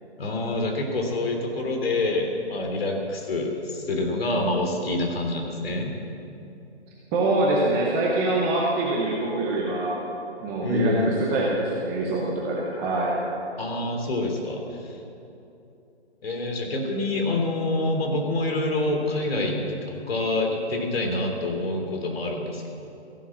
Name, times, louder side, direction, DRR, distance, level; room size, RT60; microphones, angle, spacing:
voice 1, 0.2-5.9 10.6-11.3 13.6-15.0 16.2-22.7, left 2 dB, 60° left, 2 dB, 3.2 m, -26 dB
voice 2, 7.1-10.0 10.4-13.1, right 2 dB, 5° right, -4 dB, 0.6 m, -24 dB
15.0 x 11.5 x 7.3 m, 2.7 s
hypercardioid pair, 150°, 34 cm